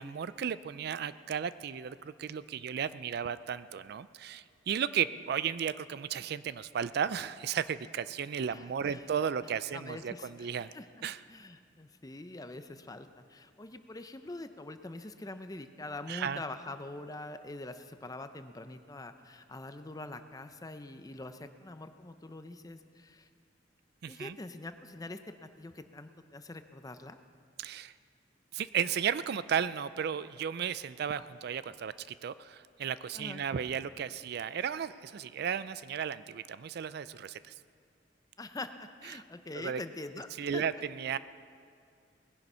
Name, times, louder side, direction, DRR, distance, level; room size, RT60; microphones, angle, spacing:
voice 1, 0.0-10.7 11.0-11.2 16.1-16.4 24.0-24.4 27.6-27.9 28.5-37.5 39.1-39.2 39.5-39.8 40.4-41.2, right 8 dB, 60° right, 15 dB, 0.4 m, -34 dB
voice 2, 8.5-9.2 9.7-10.9 11.3-23.3 24.1-27.2 33.1-33.4 38.4-40.6, left 2 dB, 20° left, 9 dB, 0.6 m, -44 dB
19.5 x 10.5 x 5.5 m, 2.3 s
head